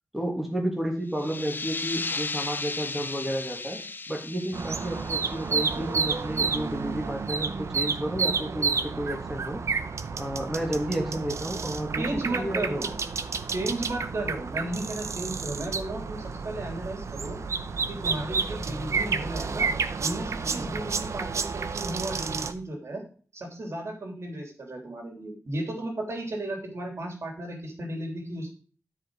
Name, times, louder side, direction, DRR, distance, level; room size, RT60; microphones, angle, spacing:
voice 1, 0.1-3.8 4.1-9.6 10.1-13.0 20.4-20.7, equal, 5° right, 0 dB, 2.8 m, -32 dB
sound 1, 1.1-6.5, left 3 dB, 40° left, 0.8 m, -36 dB
sound 2, 4.5-22.5, right 5 dB, 90° right, 0.8 m, -30 dB
voice 2, 12.0-12.9 13.5-17.4 17.9-19.7 20.0-23.0 23.3-28.6, right 1 dB, 65° right, 2 dB, 3.2 m, -34 dB
12.5 x 5.3 x 4.8 m, 0.40 s
wide cardioid pair, 120°, 5 cm